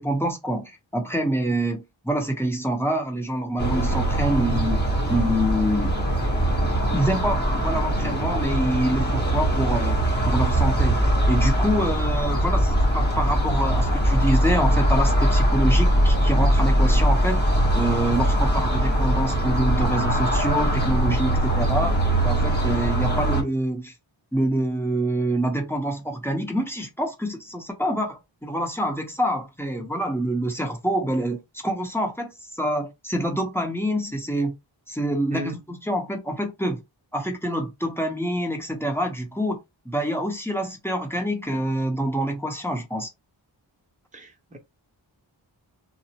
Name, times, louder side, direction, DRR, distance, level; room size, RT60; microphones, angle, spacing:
voice 1, 0.0-4.8 5.1-5.9 6.9-10.0 10.3-17.4 17.7-21.9 22.2-23.9 24.3-34.5 34.9-35.5 35.8-36.8 37.1-39.6 39.8-43.1, right 1 dB, 5° left, 0.9 m, -26 dB
sound 1, 3.6-23.4, right 1 dB, 20° left, 1.3 m, -21 dB
voice 2, 44.1-44.6, left 1 dB, 15° right, 0.7 m, -34 dB
2.6 x 2.0 x 2.9 m
cardioid pair, 40°, 49 cm